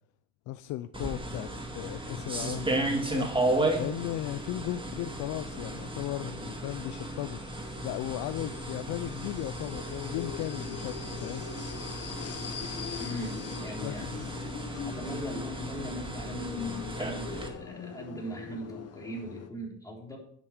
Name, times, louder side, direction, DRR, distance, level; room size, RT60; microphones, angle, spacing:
voice 1, 0.5-3.3 3.8-7.4 7.8-11.5 13.8-14.2, left 14 dB, 85° left, 0.5 m, -36 dB
sound 1, 0.9-17.5, right 1 dB, 15° right, 2.1 m, -34 dB
sound 2, 5.4-19.5, left 8 dB, 55° left, 1.1 m, -43 dB
voice 2, 13.0-14.1 14.8-20.2, right 1 dB, 10° left, 3.7 m, -40 dB
10.5 x 7.4 x 5.0 m
cardioid pair, 90°, 30 cm